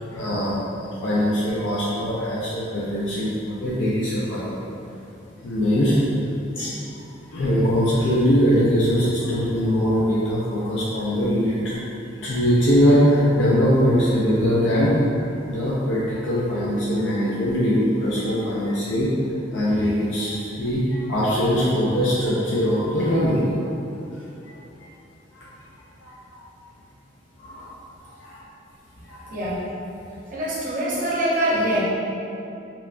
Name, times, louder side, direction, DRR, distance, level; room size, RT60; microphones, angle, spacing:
voice 1, 0.0-4.6 5.4-6.0 6.6-11.8 12.2-19.1 19.5-23.7 24.5-24.6 25.3-25.5 26.0-26.4 27.4-27.7 28.1-28.4 29.0-29.4, equal, 85° left, -8 dB, 0.4 m, -22 dB
voice 2, 30.3-31.8, right 1 dB, 45° right, -7 dB, 0.6 m, -24 dB
2.9 x 2.1 x 2.4 m, 2.7 s
head